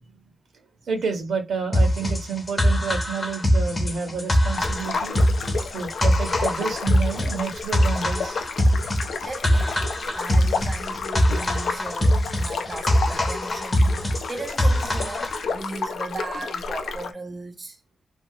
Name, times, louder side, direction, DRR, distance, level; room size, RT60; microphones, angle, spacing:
voice 1, 0.8-5.1 5.7-8.4, right 5 dB, 70° right, 1.0 m, -30 dB
sound 1, 1.7-15.4, equal, 25° left, 0.7 m, -22 dB
sound 2, 4.5-17.1, left 4 dB, 80° left, 0.4 m, -32 dB
voice 2, 9.2-17.8, right 2 dB, 25° right, 0.3 m, -37 dB
2.7 x 2.7 x 2.7 m
wide cardioid pair, 170°, 0 cm